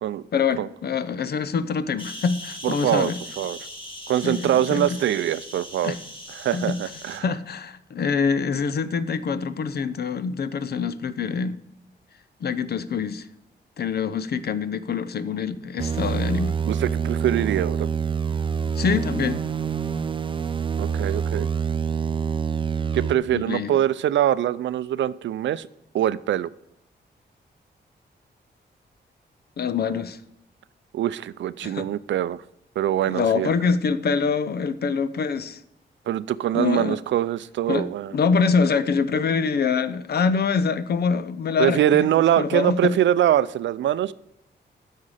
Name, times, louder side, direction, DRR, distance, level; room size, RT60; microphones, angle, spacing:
voice 1, 0.3-3.2 4.2-5.0 5.8-6.0 6.5-6.8 7.2-11.6 12.4-13.3 13.8-16.6 18.8-19.4 23.3-23.7 29.6-30.2 31.6-31.9 33.1-35.6 36.5-37.0 37.7-42.1 42.4-42.9, left 5 dB, 60° left, 13 dB, 0.7 m, -25 dB
sound 1, 2.0-7.2, left 1 dB, 25° left, 1.8 m, -40 dB
voice 2, 2.6-3.6 4.1-5.9 6.3-7.3 16.7-17.9 20.8-21.5 22.9-25.7 25.9-26.5 30.9-32.4 32.8-33.5 36.1-38.2 41.6-44.1, right 11 dB, 85° right, 18 dB, 0.4 m, -23 dB
sound 2, 15.8-23.2, right 6 dB, 25° right, 0.5 m, -26 dB
9.7 x 6.5 x 4.9 m, 0.83 s
wide cardioid pair, 110°, 19 cm